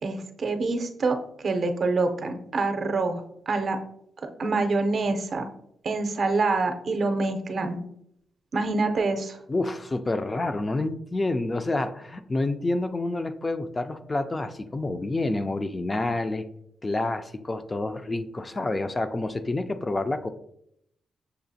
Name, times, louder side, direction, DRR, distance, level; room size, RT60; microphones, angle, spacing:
voice 1, 0.0-3.8 4.4-5.5 5.8-7.8 8.5-9.4, right 3 dB, 55° right, 6 dB, 0.5 m, -26 dB
voice 2, 9.5-16.5 16.8-20.3, left 2 dB, 25° left, 9 dB, 0.3 m, -28 dB
6.7 x 2.4 x 2.6 m, 0.74 s
cardioid pair, 80°, 0 cm